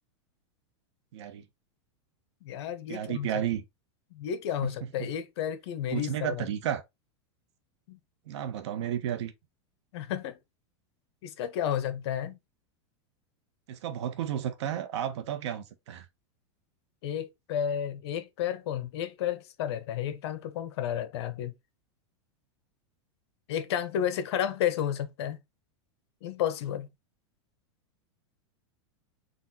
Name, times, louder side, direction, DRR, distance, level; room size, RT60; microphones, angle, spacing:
voice 1, 1.1-1.4 2.9-3.6 5.9-6.8 8.3-9.3 13.7-16.0, right 10 dB, 70° right, 0.9 m, -32 dB
voice 2, 2.4-3.3 4.1-6.5 7.9-8.0 9.9-10.4 11.2-12.4 17.0-21.5 23.5-25.4 26.2-26.9, left 9 dB, 65° left, 0.8 m, -32 dB
4.1 x 2.4 x 4.1 m
supercardioid pair, 145°, 15 cm